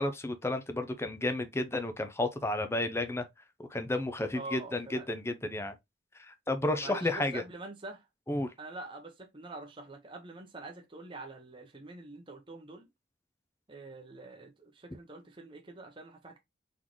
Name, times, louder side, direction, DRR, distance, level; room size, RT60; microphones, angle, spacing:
voice 1, 0.0-3.3 3.7-5.7 6.3-7.4 8.3-8.5, left 2 dB, 15° left, 0.6 m, -32 dB
voice 2, 4.3-5.1 6.8-8.0 8.6-12.9 13.7-16.4, right 2 dB, 25° right, 0.8 m, -45 dB
4.0 x 3.7 x 3.1 m
head